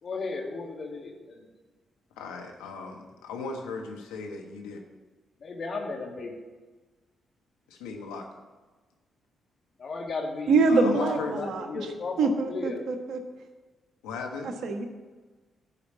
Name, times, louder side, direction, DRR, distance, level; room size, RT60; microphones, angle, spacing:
voice 1, 0.0-1.5 5.4-6.3 9.8-12.8, left 3 dB, 55° left, 1 dB, 2.1 m, -35 dB
voice 2, 2.2-4.8 7.7-8.2 10.7-11.3 14.0-14.5, left 4 dB, 85° left, 2 dB, 1.3 m, -37 dB
voice 3, 10.5-11.7 12.2-13.2 14.4-14.9, right 3 dB, 70° right, 5 dB, 1.3 m, -24 dB
11.5 x 5.1 x 8.5 m, 1.3 s
hypercardioid pair, 40°, 0 cm